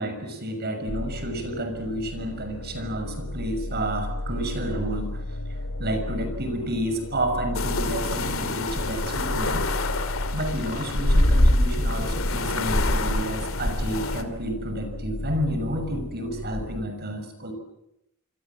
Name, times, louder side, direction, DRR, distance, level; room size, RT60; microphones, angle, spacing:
voice 1, 0.0-9.7 10.3-17.5, right 1 dB, 50° right, 8 dB, 6.3 m, -30 dB
sound 1, 0.9-16.7, left 1 dB, 90° left, 3.1 m, -34 dB
sound 2, 7.5-14.2, left 1 dB, 70° left, 2.6 m, -25 dB
26.5 x 26.5 x 7.5 m, 0.83 s
head